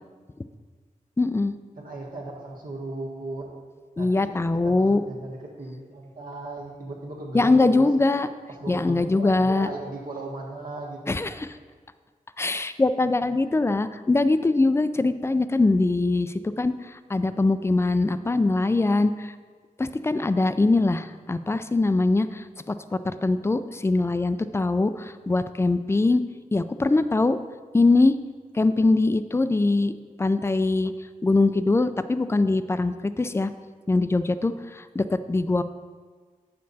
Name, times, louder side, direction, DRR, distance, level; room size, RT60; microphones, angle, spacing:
voice 1, 1.2-1.5 4.0-5.0 7.3-8.3 8.7-9.7 11.1-11.5 12.4-16.7 17.1-19.3 19.8-26.2 26.5-27.4 27.7-28.1 28.5-29.9 30.2-30.9 31.2-33.5 33.9-35.6, left 2 dB, 20° left, 12 dB, 0.3 m, -22 dB
voice 2, 1.8-3.5 4.0-7.9 8.5-11.3, right 2 dB, 80° right, -1 dB, 1.5 m, -37 dB
8.4 x 6.6 x 4.1 m, 1.5 s
wide cardioid pair, 115°, 14 cm